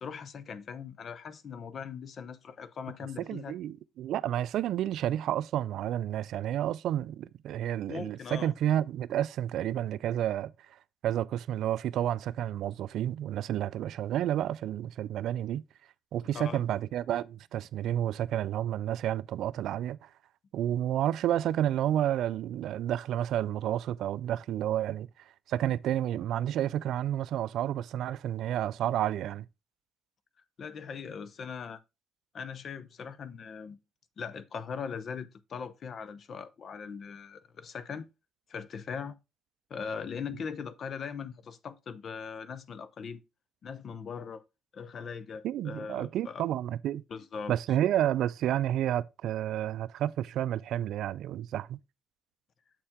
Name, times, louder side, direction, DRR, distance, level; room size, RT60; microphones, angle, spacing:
voice 1, 0.0-3.5 7.9-8.5 16.3-16.6 30.6-31.8 32.3-33.8 34.2-38.1 38.5-39.1 39.7-43.2 43.6-44.4 44.7-46.4 47.1-47.5, left 6 dB, 55° left, 0.7 m, -40 dB
voice 2, 3.2-10.8 11.0-15.6 16.1-20.1 20.5-25.1 25.5-29.5 45.4-47.0 47.5-51.8, right 11 dB, 80° right, 0.3 m, -30 dB
7.5 x 4.5 x 3.5 m
cardioid pair, 90°, 0 cm